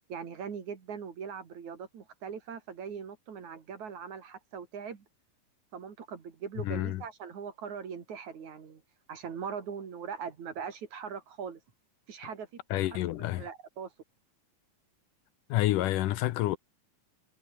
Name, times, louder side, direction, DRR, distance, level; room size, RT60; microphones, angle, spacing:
voice 1, 0.1-5.1 5.7-8.8 9.1-11.6 12.1-12.6 12.9-13.0 13.4-13.9, right 7 dB, 60° right, 4.0 m, -40 dB
voice 2, 6.6-7.0 12.7-13.5 15.5-16.6, left 15 dB, 75° left, 2.3 m, -29 dB
omnidirectional pair, 4.0 m